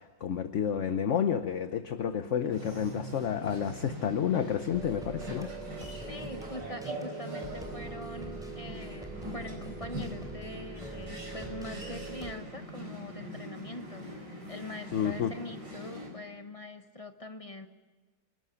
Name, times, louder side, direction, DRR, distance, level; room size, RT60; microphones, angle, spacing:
voice 1, 0.0-5.5 14.9-15.3, left 8 dB, 50° left, 9 dB, 1.0 m, -30 dB
sound 1, 2.5-16.1, equal, 70° right, 5.1 m, -43 dB
sound 2, 4.7-12.3, right 3 dB, ahead, 3.0 m, -43 dB
voice 2, 6.1-14.1 14.5-17.7, left 1 dB, 25° left, 7 dB, 0.9 m, -43 dB
26.5 x 13.0 x 10.0 m, 1.3 s
omnidirectional pair, 2.0 m